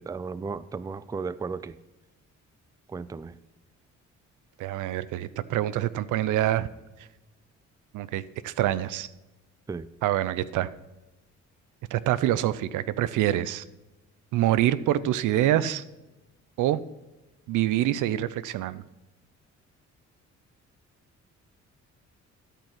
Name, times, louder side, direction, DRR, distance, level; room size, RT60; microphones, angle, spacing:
voice 1, 0.0-1.8 2.9-3.4 9.7-9.9, right 5 dB, 10° right, 18 dB, 0.3 m, -34 dB
voice 2, 4.6-6.7 7.9-9.1 10.0-10.7 11.9-13.6 14.3-15.8 16.6-16.8 17.5-18.8, right 13 dB, 85° right, 17 dB, 0.6 m, -26 dB
12.5 x 5.5 x 5.8 m, 1.0 s
cardioid pair, 90°, 30 cm